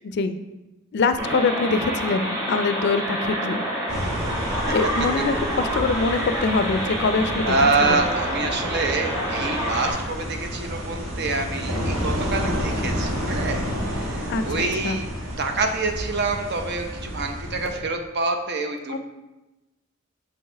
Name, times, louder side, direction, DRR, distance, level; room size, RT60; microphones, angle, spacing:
voice 1, 0.0-0.4 0.9-3.6 4.7-7.6 7.9-8.0 14.3-15.0 18.9-19.0, left 4 dB, 55° left, 10 dB, 0.4 m, -24 dB
sound 1, 1.2-9.9, equal, 20° right, 2.1 m, -28 dB
sound 2, 3.9-17.8, equal, 80° right, 1.4 m, -30 dB
voice 2, 7.4-15.1 15.4-19.0, right 3 dB, 55° right, 5 dB, 0.8 m, -26 dB
7.1 x 5.6 x 3.3 m, 1.1 s
head